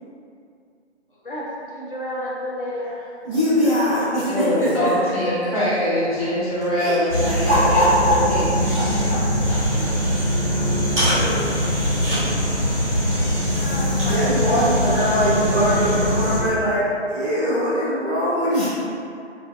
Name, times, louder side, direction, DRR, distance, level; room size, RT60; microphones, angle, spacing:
voice 1, 1.2-3.1 3.6-3.8 4.6-5.1 9.8-10.0 11.0-11.7 13.6-14.3, left 1 dB, 50° left, -6 dB, 0.5 m, -31 dB
voice 2, 3.2-4.5 6.8-7.0 7.4-8.1 8.7-9.2 9.5-9.9 14.0-16.8 17.1-18.7, equal, 5° left, -14 dB, 0.6 m, -21 dB
voice 3, 4.2-8.5, equal, 35° right, -10 dB, 0.4 m, -23 dB
sound 1, 5.7-15.1, equal, 15° right, 1.0 m, -33 dB
sound 2, 7.1-16.4, equal, 85° left, 1.5 m, -22 dB
2.5 x 2.1 x 2.3 m, 2.5 s
figure-of-eight pair, 155°, 35 cm